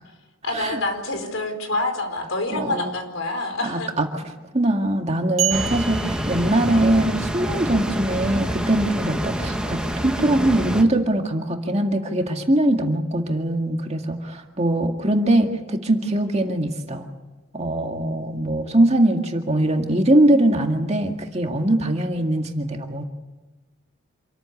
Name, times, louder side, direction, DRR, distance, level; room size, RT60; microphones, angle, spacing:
voice 1, 0.4-3.9, left 2 dB, 70° left, 5 dB, 4.6 m, -27 dB
voice 2, 2.5-2.9 3.6-4.1 4.5-17.1 17.5-23.0, right 1 dB, 30° right, 3 dB, 2.0 m, -22 dB
sound 1, 5.4-7.2, right 11 dB, 80° right, 1.9 m, -29 dB
sound 2, 5.5-10.8, equal, 5° right, 1.6 m, -27 dB
27.5 x 14.0 x 9.8 m, 1.2 s
head